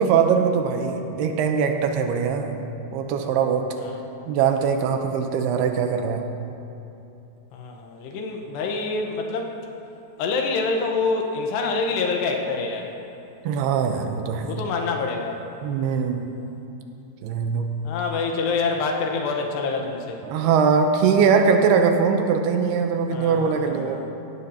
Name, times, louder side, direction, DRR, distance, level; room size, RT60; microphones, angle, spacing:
voice 1, 0.0-2.6 2.9-3.7 4.3-6.3 13.4-14.5 15.6-16.3 17.2-17.7 20.2-24.0, right 6 dB, 85° right, 5 dB, 2.7 m, -21 dB
voice 2, 7.5-9.6 10.2-12.9 14.4-15.4 17.8-20.2 23.1-24.1, left 4 dB, 85° left, 2 dB, 3.2 m, -26 dB
16.5 x 14.0 x 2.8 m, 2.8 s
omnidirectional pair, 4.7 m